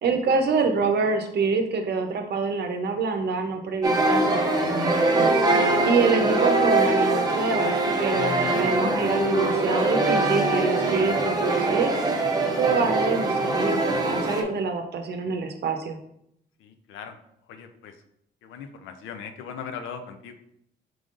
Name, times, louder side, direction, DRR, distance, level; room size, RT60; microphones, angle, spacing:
voice 1, 0.0-5.3 5.8-11.9 12.6-16.0, right 4 dB, 55° right, 5 dB, 0.7 m, -26 dB
sound 1, 3.8-14.4, right 2 dB, 20° right, 0.7 m, -23 dB
voice 2, 16.6-17.2 17.5-18.0 18.4-20.3, left 6 dB, 85° left, 7 dB, 0.5 m, -39 dB
4.8 x 3.7 x 2.5 m, 0.75 s
cardioid pair, 90°, 20 cm